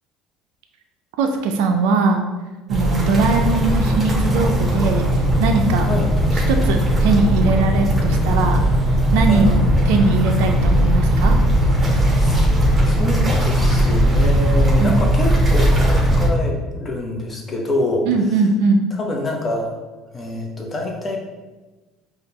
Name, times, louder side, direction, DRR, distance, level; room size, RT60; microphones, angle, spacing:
voice 1, 1.2-2.2 2.7-5.9 6.5-8.6 9.1-11.4 14.8-15.0 18.1-18.8, right 4 dB, 80° right, 4 dB, 0.4 m, -20 dB
sound 1, 2.7-16.3, equal, 25° right, 1.0 m, -17 dB
voice 2, 9.3-9.7 12.2-12.4 12.8-18.1 19.0-19.7 20.1-21.2, left 1 dB, 25° left, 0 dB, 0.8 m, -26 dB
5.0 x 2.4 x 2.9 m, 1.2 s
supercardioid pair, 85°, 0 cm